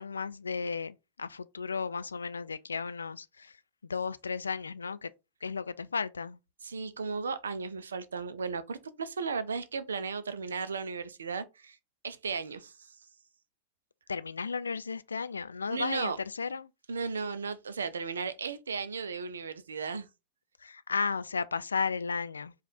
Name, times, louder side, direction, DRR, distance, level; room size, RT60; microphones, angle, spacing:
voice 1, 0.0-3.6 3.8-5.1 5.4-6.4 14.1-16.7 20.6-22.5, left 5 dB, 75° left, 0.3 m, -34 dB
voice 2, 6.6-11.8 12.0-13.0 15.7-16.2 16.9-20.1, right 5 dB, 70° right, 0.5 m, -35 dB
4.8 x 2.4 x 4.1 m
figure-of-eight pair, 90°, 0 cm